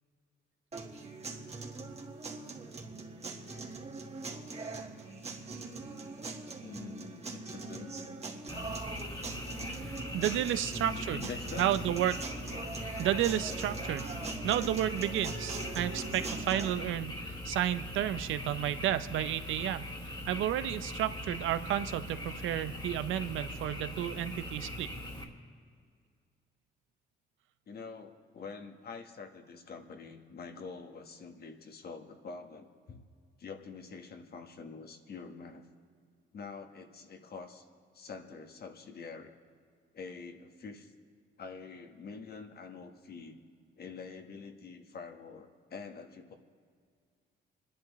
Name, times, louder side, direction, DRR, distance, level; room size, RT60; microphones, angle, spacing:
sound 1, 0.7-16.7, right 3 dB, 30° right, 1.5 m, -41 dB
voice 1, 6.6-7.9 10.5-11.8 27.7-33.0 33.4-35.6 36.3-37.7 37.9-39.3 39.9-40.9 41.4-43.4 43.8-46.3, left 5 dB, 50° left, 5 dB, 1.3 m, -46 dB
Frog, 8.5-25.2, left 1 dB, 25° left, 2.3 m, -41 dB
voice 2, 9.7-11.2 11.6-12.2 13.0-14.0 14.4-19.8 20.3-24.9, right 12 dB, 80° right, 12 dB, 0.6 m, -32 dB
27.5 x 11.0 x 3.1 m, 2.1 s
cardioid pair, 90°, 20 cm